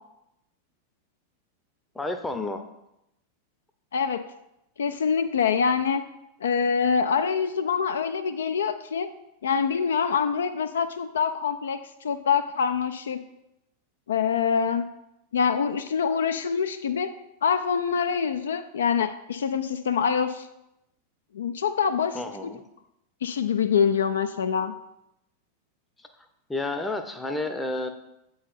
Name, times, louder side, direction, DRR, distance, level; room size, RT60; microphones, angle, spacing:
voice 1, 1.9-2.6 22.1-22.6 26.0-26.1 26.5-27.9, left 2 dB, 10° left, 6 dB, 0.6 m, -30 dB
voice 2, 3.9-4.2 4.8-6.0 6.4-9.1 9.4-13.2 14.1-14.9 15.3-17.1 17.4-20.5 21.3-22.2 23.2-24.7, left 6 dB, 65° left, 9 dB, 0.3 m, -25 dB
7.7 x 3.9 x 4.1 m, 0.86 s
figure-of-eight pair, 90°, 0 cm